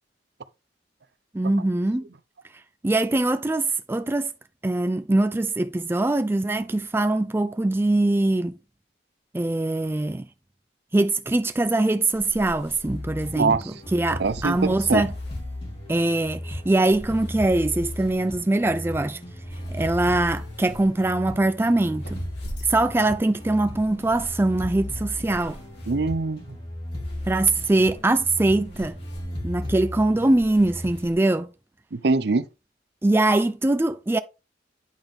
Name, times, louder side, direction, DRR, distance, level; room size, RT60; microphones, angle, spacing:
voice 1, 1.3-2.1 2.8-4.3 4.6-8.5 9.3-10.3 10.9-13.6 13.9-15.1 15.9-19.2 19.7-22.2 22.6-25.6 27.3-29.0 29.4-31.5 33.0-34.2, right 2 dB, 15° right, 0.3 m, -22 dB
sound 1, 12.1-31.1, equal, 70° left, 4.0 m, -46 dB
sound 2, 12.8-31.0, left 1 dB, 35° left, 3.6 m, -36 dB
voice 2, 13.4-13.7 14.2-15.0 25.9-26.6 31.9-32.4, right 4 dB, 60° right, 0.6 m, -23 dB
9.2 x 5.2 x 3.7 m
head